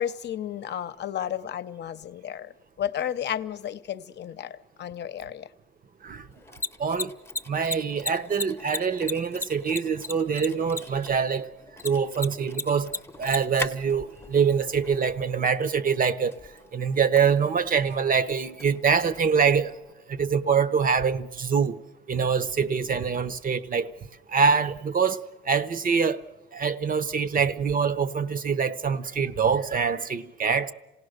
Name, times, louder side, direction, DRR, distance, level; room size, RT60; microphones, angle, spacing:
voice 1, 0.0-5.5, left 10 dB, 60° left, 0.8 m, -33 dB
Mechanisms, 6.3-19.9, left 3 dB, 15° left, 0.8 m, -39 dB
voice 2, 6.8-7.1 7.5-11.5 11.8-12.9 13.2-16.3 16.7-19.7 20.1-21.8 22.1-23.9 24.3-26.2 26.5-30.7, right 6 dB, 45° right, 0.9 m, -24 dB
26.5 x 17.5 x 6.6 m
cardioid pair, 90°, 20 cm